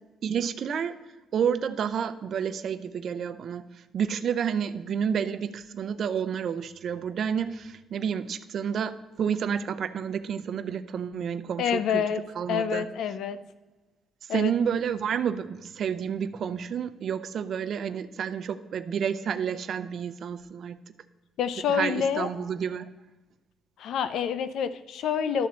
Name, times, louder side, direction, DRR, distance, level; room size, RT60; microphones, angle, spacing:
voice 1, 0.2-1.0 1.3-3.7 3.9-12.0 12.3-12.9 14.3-20.8 21.7-22.9, right 7 dB, 60° right, 12 dB, 0.6 m, -30 dB
voice 2, 11.6-12.2 12.5-13.4 14.3-14.5 21.4-22.3 23.8-25.5, left 7 dB, 75° left, 13 dB, 0.6 m, -27 dB
12.0 x 4.3 x 7.2 m, 1.2 s
cardioid pair, 90°, 0 cm